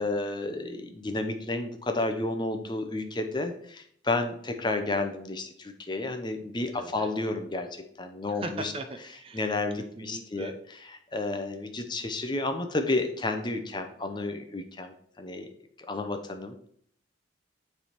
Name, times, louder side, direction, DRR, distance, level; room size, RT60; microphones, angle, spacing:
voice 1, 0.0-8.7 9.3-10.5 10.9-15.5 15.9-16.7, left 2 dB, 25° left, 6 dB, 0.6 m, -31 dB
voice 2, 6.7-7.1 8.3-10.6 11.3-11.4, right 2 dB, 30° right, 7 dB, 0.6 m, -40 dB
9.6 x 3.4 x 4.4 m, 0.66 s
head